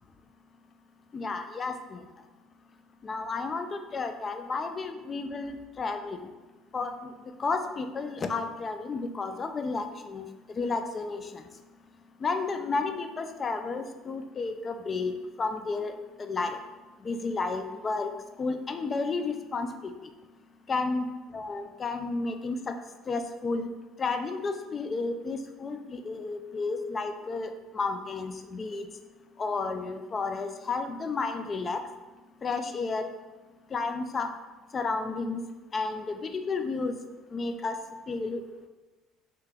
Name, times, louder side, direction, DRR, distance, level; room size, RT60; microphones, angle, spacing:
voice 1, 1.1-2.0 3.0-6.2 6.7-7.1 7.4-11.4 12.2-15.9 16.2-16.6 17.0-18.1 18.4-19.9 20.7-21.1 21.3-22.8 23.1-23.7 24.0-28.9 29.4-31.8 32.4-33.1 33.7-34.3 34.7-35.4 35.7-37.0 37.3-37.8 38.1-38.4, left 4 dB, 35° left, 7 dB, 0.4 m, -32 dB
3.3 x 2.9 x 3.4 m, 1.2 s
supercardioid pair, 90°, 0 cm